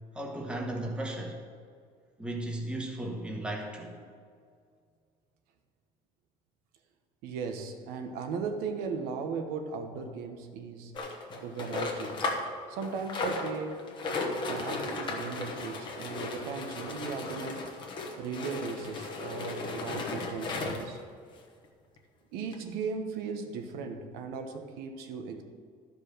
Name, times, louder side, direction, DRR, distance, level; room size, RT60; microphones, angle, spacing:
voice 1, 0.1-1.4 2.2-4.0, right 1 dB, 5° right, 0 dB, 1.2 m, -35 dB
voice 2, 7.2-10.9 11.4-12.2 12.7-13.9 14.5-17.7 18.2-21.0 22.3-25.4, right 5 dB, 90° right, 5 dB, 1.1 m, -37 dB
sound 1, 10.9-12.5 12.8-21.0 21.6-21.7 22.0-22.1 22.5-22.6, left 3 dB, 35° left, 1.1 m, -35 dB
12.0 x 5.2 x 6.5 m, 2.1 s
cardioid pair, 170°, 15 cm